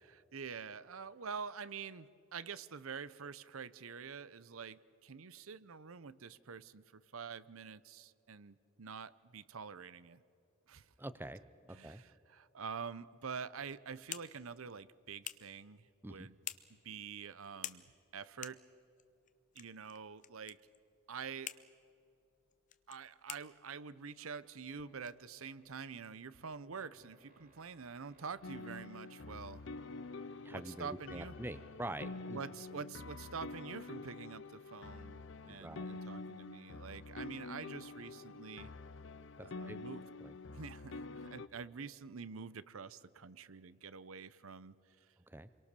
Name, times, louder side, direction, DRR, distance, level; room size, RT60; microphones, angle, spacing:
voice 1, 0.1-10.2 10.7-10.9 11.7-16.3 16.8-17.8 18.1-18.6 19.5-20.6 21.1-21.5 22.9-29.6 30.5-31.3 32.3-38.7 39.4-40.0 40.5-44.8, right 6 dB, 80° right, 16 dB, 0.7 m, -47 dB
voice 2, 11.0-12.0 16.0-16.3 30.4-32.4 35.5-36.0 39.4-39.8 40.2-40.3 45.3-45.5, right 1 dB, 10° right, 13 dB, 0.6 m, -46 dB
sound 1, 13.5-25.9, left 10 dB, 35° left, 0.8 m, -52 dB
sound 2, 24.6-33.1, right 1 dB, 40° right, 3.0 m, -66 dB
sound 3, 28.4-41.5, left 3 dB, 60° left, 0.6 m, -47 dB
28.0 x 23.0 x 6.8 m, 2.6 s
head